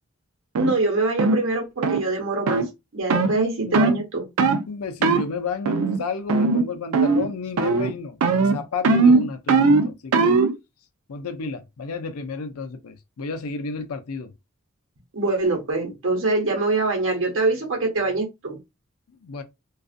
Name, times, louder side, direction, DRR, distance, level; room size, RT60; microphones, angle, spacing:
sound 1, 0.5-0.7 1.2-1.4 1.8-2.0 2.5-2.7 3.1-3.3 3.7-4.0 4.4-4.6 5.0-5.3 5.6-6.0 6.3-6.7 6.9-7.3 7.6-7.9 8.2-10.5, right 3 dB, 85° right, 0.4 m, -19 dB
voice 1, 0.6-2.6 2.9-4.2 15.1-18.6, right 3 dB, 60° right, 0.9 m, -24 dB
voice 2, 3.2-3.9 4.7-10.4 11.1-14.3 19.1-19.4, left 4 dB, 85° left, 0.5 m, -32 dB
2.5 x 2.3 x 2.4 m
head